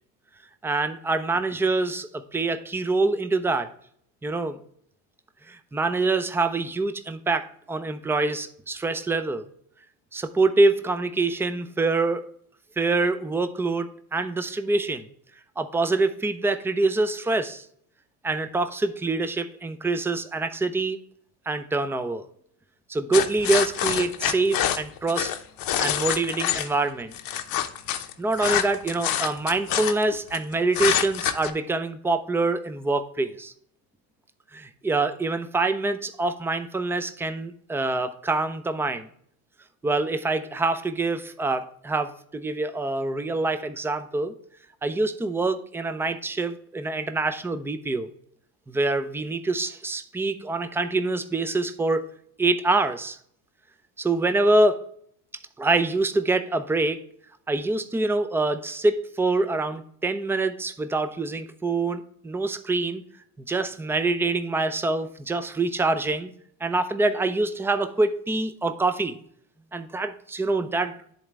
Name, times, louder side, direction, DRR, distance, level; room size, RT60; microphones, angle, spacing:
voice 1, 0.6-3.7 4.2-4.6 5.5-9.4 10.1-12.3 12.8-15.0 15.6-17.7 18.2-21.0 21.5-22.2 22.9-25.4 25.8-27.1 28.2-33.5 34.5-39.1 39.8-44.3 44.8-48.1 48.7-52.1 52.4-53.2 54.0-54.9 55.6-57.0 57.5-63.0 63.5-66.3 66.6-69.2 69.7-71.0, right 3 dB, 5° right, 9 dB, 0.5 m, -25 dB
sound 1, 23.1-26.7 27.1-30.4 30.7-31.5, left 11 dB, 50° left, 0.9 m, -26 dB
10.5 x 3.9 x 3.3 m, 0.64 s
supercardioid pair, 90°, 44 cm